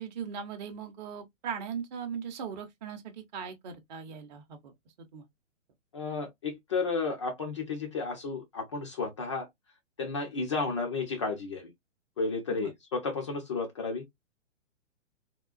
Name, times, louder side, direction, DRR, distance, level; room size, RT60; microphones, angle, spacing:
voice 1, 0.0-4.7 5.1-5.3 12.5-12.7, right 7 dB, 35° right, 0.7 m, -39 dB
voice 2, 5.9-9.5 10.0-11.7 12.2-14.0, left 4 dB, 25° left, 0.4 m, -32 dB
3.6 x 2.3 x 2.3 m
figure-of-eight pair, 120°, 39 cm